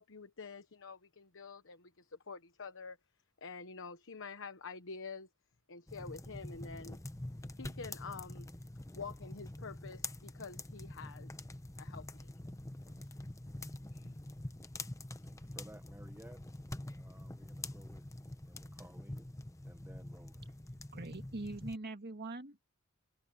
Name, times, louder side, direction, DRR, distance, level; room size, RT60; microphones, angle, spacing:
voice 1, 0.0-3.0 3.4-5.3 5.7-7.0 7.6-8.5 8.9-11.3 11.8-12.3 13.9-14.2, left 4 dB, 65° left, 1.1 m, -47 dB
sound 1, 5.9-21.8, left 1 dB, 15° left, 0.9 m, -46 dB
voice 2, 15.2-16.4 17.0-18.1 18.4-19.3 19.7-20.5, right 1 dB, 10° right, 1.4 m, -57 dB
voice 3, 20.9-22.8, right 2 dB, 50° right, 1.9 m, -43 dB
head